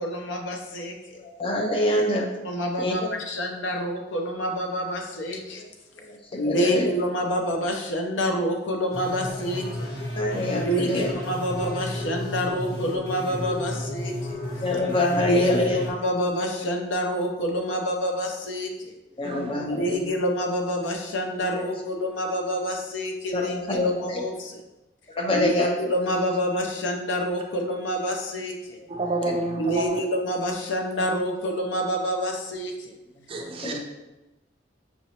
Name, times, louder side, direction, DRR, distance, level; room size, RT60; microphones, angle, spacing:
voice 1, 0.0-1.2 2.4-5.6 6.4-9.9 10.5-14.4 15.1-19.0 19.6-24.6 25.3-28.8 29.6-33.0, equal, 80° left, 2 dB, 0.6 m, -27 dB
voice 2, 1.2-2.3 2.8-2.9 6.5-6.9 10.1-11.1 14.6-15.8 19.2-20.0 23.3-24.2 25.2-25.7 33.6-33.8, left 2 dB, 30° left, 1 dB, 0.6 m, -25 dB
sound 1, 8.9-15.9, left 1 dB, 55° left, 1.2 m, -32 dB
voice 3, 19.2-19.8 28.9-30.0 33.3-33.8, right 2 dB, 30° right, 2 dB, 0.4 m, -30 dB
5.6 x 3.0 x 2.8 m, 1.0 s
head